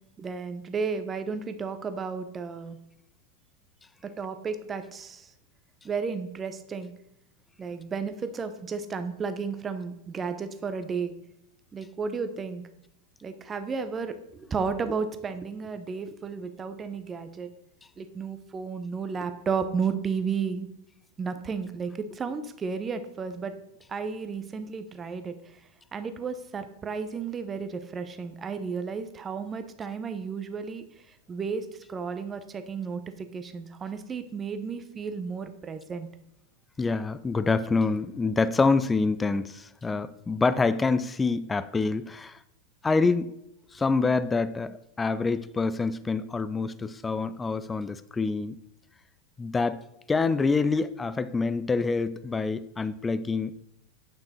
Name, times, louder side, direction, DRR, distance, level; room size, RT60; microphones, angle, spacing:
voice 1, 0.2-2.8 4.0-5.3 5.8-6.9 7.6-11.1 11.7-12.7 13.2-17.5 18.0-20.7 21.2-23.5 23.9-25.3 25.9-30.8 31.3-36.1, right 5 dB, 20° right, 0.8 m, -33 dB
voice 2, 36.8-42.4 42.8-43.3 43.7-48.6 49.4-49.8 50.1-53.5, left 4 dB, 15° left, 0.4 m, -26 dB
8.8 x 5.9 x 4.3 m
figure-of-eight pair, 90°, 0 cm